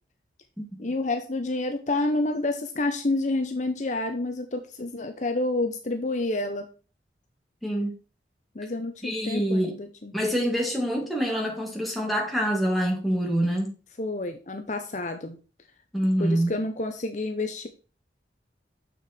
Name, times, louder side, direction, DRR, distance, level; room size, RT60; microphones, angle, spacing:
voice 1, 0.8-6.7 8.5-10.1 14.0-15.4 16.2-17.7, left 2 dB, 45° left, 0.8 m, -29 dB
voice 2, 7.6-7.9 9.0-9.8 10.1-13.7 15.9-16.5, equal, ahead, 2.2 m, -25 dB
6.9 x 6.4 x 4.3 m
head